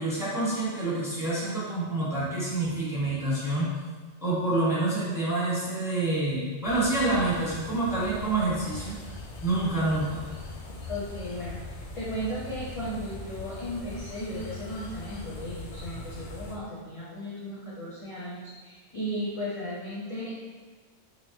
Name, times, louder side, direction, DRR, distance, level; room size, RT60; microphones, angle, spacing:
voice 1, 0.0-3.7 4.2-9.0 9.4-10.3, right 2 dB, 5° right, -7 dB, 0.8 m, -27 dB
sound 1, 6.6-16.6, left 2 dB, 85° left, 0.9 m, -41 dB
voice 2, 10.9-20.5, equal, 35° left, -7 dB, 0.6 m, -36 dB
3.6 x 3.1 x 2.6 m, 1.5 s
omnidirectional pair, 1.2 m